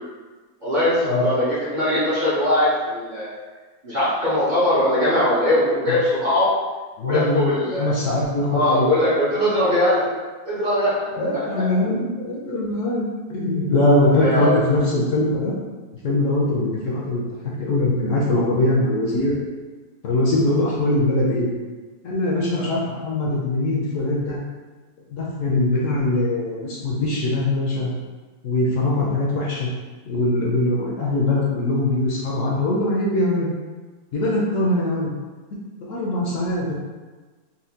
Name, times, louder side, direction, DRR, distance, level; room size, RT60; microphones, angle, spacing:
voice 1, 0.6-3.3 3.8-6.5 7.0-7.9 8.5-10.1 10.5-11.0 11.3-11.6 14.2-14.6 22.6-22.7, left 1 dB, 45° right, -10 dB, 0.6 m, -21 dB
voice 2, 7.0-9.1 11.1-13.0 13.3-15.5 16.0-17.2 17.6-19.3 20.0-21.5 22.0-24.4 25.1-28.0 28.4-29.7 30.1-33.5 34.1-35.1 35.8-36.7, left 2 dB, 65° left, -4 dB, 0.9 m, -22 dB
4.2 x 2.2 x 2.7 m, 1.3 s
omnidirectional pair, 1.7 m